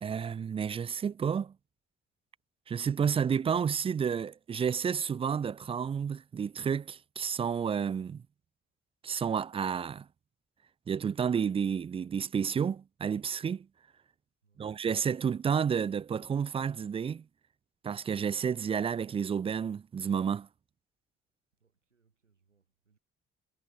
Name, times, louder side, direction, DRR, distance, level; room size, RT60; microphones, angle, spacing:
voice 1, 0.0-1.5 2.7-8.2 9.0-10.1 10.9-13.7 14.6-17.2 17.8-20.5, right 7 dB, 15° right, 0.3 m, -31 dB
voice 2, 14.4-14.9 21.5-23.0, right 5 dB, 90° right, 7.2 m, -73 dB
figure-of-eight pair, 45°, 35 cm